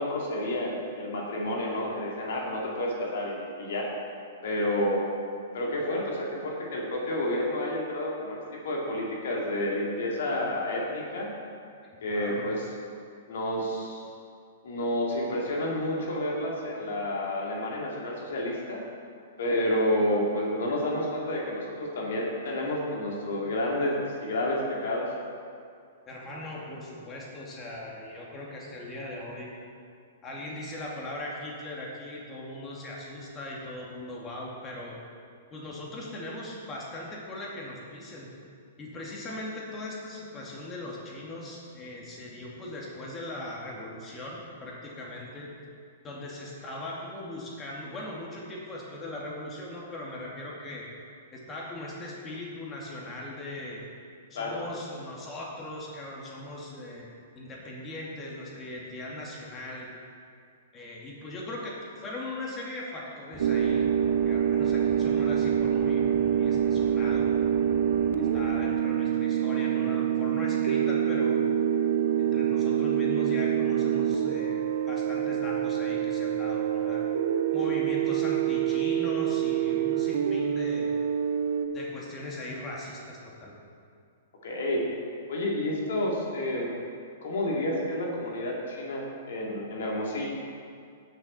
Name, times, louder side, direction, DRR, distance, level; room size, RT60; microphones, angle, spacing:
voice 1, 0.0-3.9 4.4-5.0 5.5-11.3 12.0-12.7 13.3-14.0 14.6-18.8 19.4-25.0 54.3-54.6 84.4-84.8 85.3-86.8 87.2-90.3, left 1 dB, 65° left, -2 dB, 2.2 m, -30 dB
voice 2, 12.1-12.5 26.1-29.5 30.2-35.0 35.5-38.3 38.8-45.5 46.0-50.9 51.3-53.8 54.3-59.9 60.7-66.1 66.4-67.3 68.2-71.4 72.2-74.6 74.9-77.1 77.5-80.9 81.7-83.5, left 1 dB, 25° left, -3 dB, 2.4 m, -39 dB
sound 1, 63.3-68.7, right 2 dB, 5° right, 1.7 m, -44 dB
sound 2, 63.4-81.7, right 9 dB, 65° right, 0.6 m, -26 dB
18.0 x 6.5 x 4.3 m, 2.3 s
hypercardioid pair, 110°, 0 cm